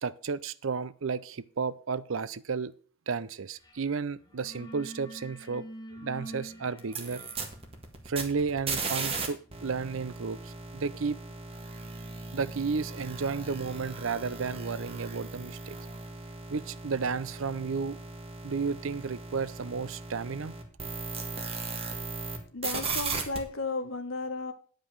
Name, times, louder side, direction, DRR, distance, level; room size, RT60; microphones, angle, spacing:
voice 1, 0.0-2.7 3.1-5.7 5.9-7.2 8.1-11.2 12.3-15.8 16.5-18.0 18.4-20.5, right 5 dB, 70° right, 0.6 m, -33 dB
sound 1, 3.6-3.9 4.1-10.8, right 1 dB, 20° left, 1.4 m, -48 dB
sound 2, 6.8-9.3 9.5-22.4 22.6-23.4, right 4 dB, 25° right, 1.7 m, -37 dB
voice 2, 22.5-24.5, left 3 dB, 70° left, 1.4 m, -34 dB
10.0 x 5.2 x 7.3 m
head